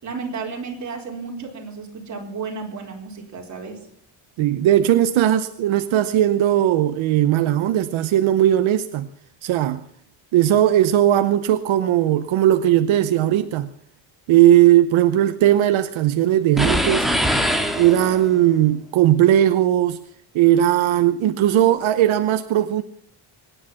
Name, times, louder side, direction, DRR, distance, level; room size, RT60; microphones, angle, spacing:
voice 1, 0.0-3.8, right 4 dB, 35° right, 0 dB, 4.3 m, -33 dB
voice 2, 4.4-9.1 9.4-9.8 10.3-13.7 14.3-17.1 17.8-20.0 20.3-22.8, right 12 dB, 75° right, 10 dB, 0.9 m, -18 dB
sound 1, 16.6-18.4, equal, ahead, 1.7 m, -22 dB
24.0 x 10.5 x 5.8 m, 0.67 s
cardioid pair, 160°, 48 cm